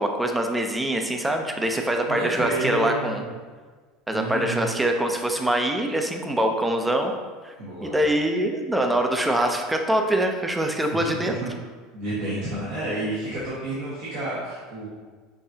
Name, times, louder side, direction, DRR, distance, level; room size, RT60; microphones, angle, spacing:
voice 1, 0.0-3.2 4.1-7.2 7.4-7.5 7.8-11.3, right 1 dB, 10° right, 4 dB, 0.6 m, -24 dB
voice 2, 2.2-3.3 4.1-4.7 7.6-8.0 10.9-11.5 11.9-14.9, right 2 dB, 65° right, -9 dB, 1.4 m, -30 dB
6.6 x 2.6 x 2.8 m, 1.4 s
supercardioid pair, 105°, 0 cm